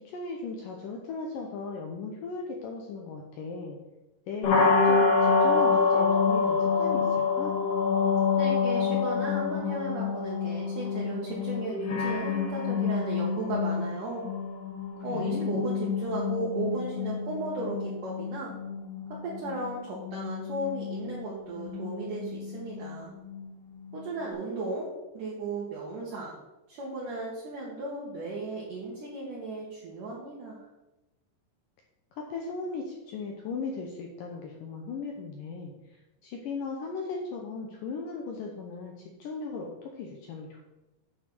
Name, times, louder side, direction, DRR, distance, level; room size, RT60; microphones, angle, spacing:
voice 1, 0.0-3.8 4.3-7.5 15.1-15.6 32.1-40.6, left 4 dB, 80° left, 1 dB, 1.9 m, -37 dB
sound 1, 4.4-24.3, left 5 dB, 45° left, 2.3 m, -28 dB
voice 2, 8.4-14.3 15.0-18.5 19.1-23.1 23.9-26.4 26.7-30.7, right 2 dB, 60° right, -4 dB, 2.5 m, -35 dB
9.4 x 5.5 x 6.2 m, 1.0 s
omnidirectional pair, 5.2 m